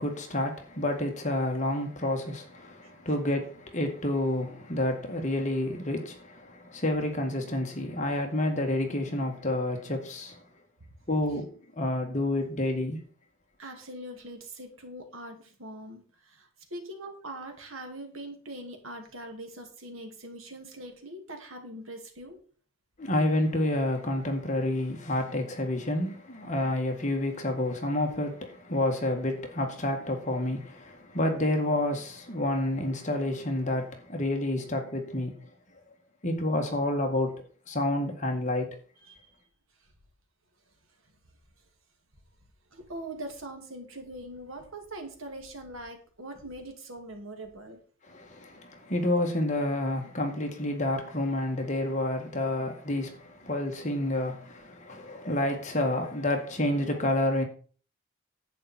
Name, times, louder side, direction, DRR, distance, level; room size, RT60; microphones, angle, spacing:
voice 1, 0.0-10.4 11.1-11.5 11.8-13.0 23.0-35.3 36.2-37.3 37.7-38.7 48.1-57.4, left 1 dB, 35° left, 1.8 m, -29 dB
voice 2, 13.6-22.4 39.0-39.3 42.7-47.8, right 1 dB, 70° right, 2.5 m, -42 dB
10.5 x 8.3 x 4.4 m
head